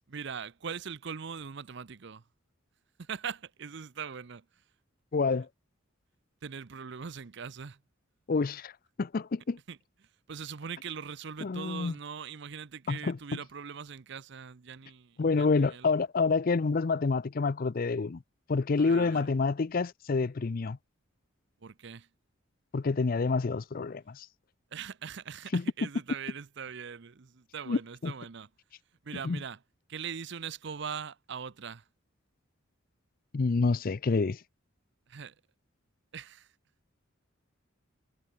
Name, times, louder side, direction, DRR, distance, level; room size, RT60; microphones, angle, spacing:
voice 1, 0.1-2.2 3.0-4.4 6.4-7.8 9.7-9.8 10.3-15.9 18.8-19.3 21.6-22.1 24.7-28.5 29.0-29.6 29.9-31.8 35.1-35.3 36.1-36.5, right 6 dB, 55° right, 0.6 m, -41 dB
voice 2, 5.1-5.5 8.3-8.7 9.0-9.6 11.4-11.9 12.9-13.2 15.2-18.2 18.5-20.8 22.7-24.3 25.5-25.9 27.7-28.1 29.2-29.4 33.3-34.4, left 4 dB, 45° left, 0.5 m, -28 dB
head